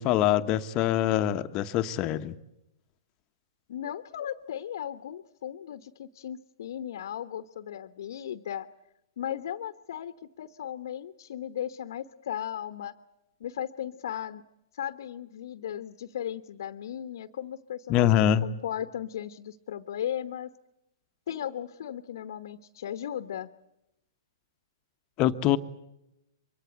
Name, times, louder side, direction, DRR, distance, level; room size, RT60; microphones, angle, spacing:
voice 1, 0.0-2.3 17.9-18.5 25.2-25.6, left 11 dB, 35° left, 10 dB, 1.1 m, -24 dB
voice 2, 3.7-8.7 9.2-12.9 13.4-14.4 14.7-20.5 21.3-23.5, left 10 dB, 60° left, 10 dB, 1.1 m, -36 dB
24.0 x 23.0 x 8.1 m, 0.87 s
hypercardioid pair, 115°, 2 cm